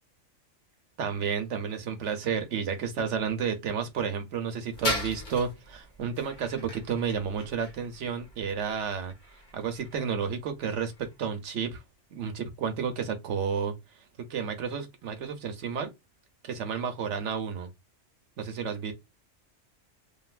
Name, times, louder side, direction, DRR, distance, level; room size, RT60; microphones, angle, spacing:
voice 1, 1.0-9.1 9.5-11.8 12.1-13.7 14.3-15.9 16.4-17.7 18.4-18.9, right 6 dB, 70° right, 1.1 m, -31 dB
sound 1, 4.7-11.4, left 1 dB, 40° left, 1.1 m, -39 dB
3.2 x 2.5 x 2.4 m
omnidirectional pair, 1.3 m